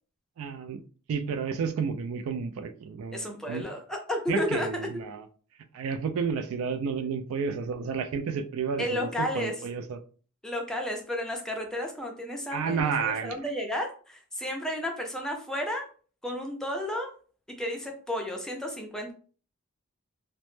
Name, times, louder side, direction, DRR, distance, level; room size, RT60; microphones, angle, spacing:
voice 1, 0.4-0.8 1.1-3.7 4.3-5.2 5.7-10.0 12.5-13.4, right 6 dB, 75° right, 0.3 m, -31 dB
voice 2, 3.1-4.9 8.8-9.6 10.4-15.8 16.2-17.1 17.6-19.1, left 1 dB, 5° left, 0.4 m, -32 dB
2.1 x 2.0 x 3.0 m
head